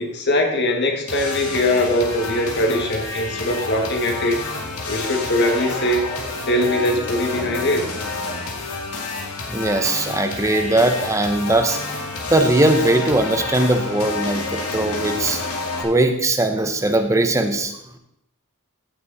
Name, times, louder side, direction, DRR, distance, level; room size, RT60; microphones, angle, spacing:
voice 1, 0.0-4.4 4.9-6.1 6.5-7.9, left 1 dB, 50° left, 2 dB, 1.9 m, -21 dB
sound 1, 1.1-15.8, left 3 dB, 80° left, 2.2 m, -29 dB
voice 2, 9.5-11.8 12.3-15.4 15.8-17.8, right 2 dB, 15° right, 6 dB, 0.9 m, -19 dB
15.5 x 6.3 x 4.1 m, 0.77 s
head